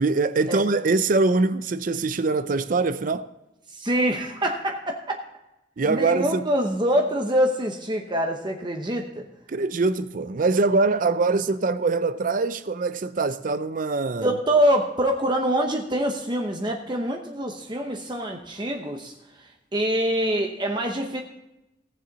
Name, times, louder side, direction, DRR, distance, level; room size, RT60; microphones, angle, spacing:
voice 1, 0.0-3.3 5.8-6.5 9.5-14.3, right 3 dB, 45° right, 0.5 m, -23 dB
voice 2, 3.7-5.2 5.9-9.2 14.2-19.1 19.4-21.2, equal, 25° right, 0.9 m, -25 dB
17.5 x 7.4 x 4.0 m
head